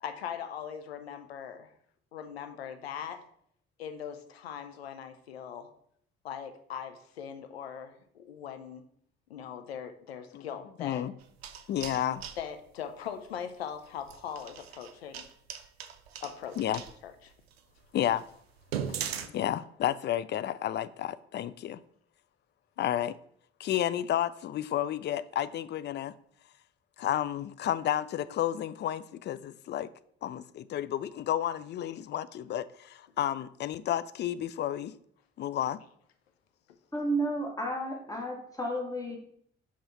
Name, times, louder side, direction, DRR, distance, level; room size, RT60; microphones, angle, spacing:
voice 1, 0.0-1.7 2.1-3.2 3.8-5.7 6.2-8.8 9.3-11.1 12.4-15.3 16.2-17.3 18.9-19.4, left 8 dB, 80° left, 8 dB, 0.6 m, -41 dB
voice 2, 10.8-11.1 11.7-12.2 16.6-16.8 17.9-18.2 19.3-21.8 22.8-23.2 23.6-26.1 27.0-29.9 30.2-34.9 35.4-35.8, left 11 dB, 35° left, 16 dB, 0.4 m, -31 dB
sound 1, 11.2-12.4 14.0-16.9 17.5-17.6 18.0-18.1 18.6-19.3, right 8 dB, 80° right, 0.5 m, -38 dB
voice 3, 36.9-39.2, right 1 dB, 10° left, -1 dB, 1.9 m, -32 dB
5.5 x 4.9 x 4.2 m, 0.65 s
figure-of-eight pair, 40°, 31 cm